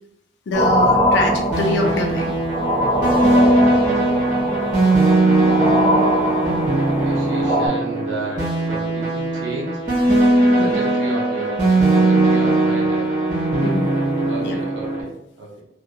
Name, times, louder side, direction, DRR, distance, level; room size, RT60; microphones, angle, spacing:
voice 1, 0.5-2.3 10.6-10.7 13.6-13.9 14.4-14.6, left 2 dB, 75° left, 3 dB, 0.4 m, -24 dB
sound 1, 0.5-7.7, equal, 10° left, 1.0 m, -21 dB
sound 2, 1.5-15.0, right 2 dB, 45° right, 1.1 m, -19 dB
voice 2, 5.9-9.8 10.3-11.7 11.9-13.1 14.3-15.6, right 2 dB, 80° right, -3 dB, 0.6 m, -33 dB
2.7 x 2.3 x 2.2 m, 0.79 s
head